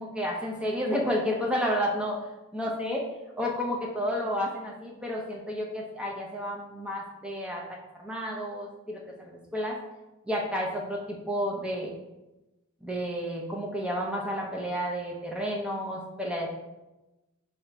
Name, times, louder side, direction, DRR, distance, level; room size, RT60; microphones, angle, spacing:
voice 1, 0.0-2.2 2.5-3.0 3.4-9.8 10.3-11.9 12.8-16.5, equal, 5° right, -1 dB, 0.6 m, -31 dB
4.7 x 3.0 x 3.2 m, 1.0 s
head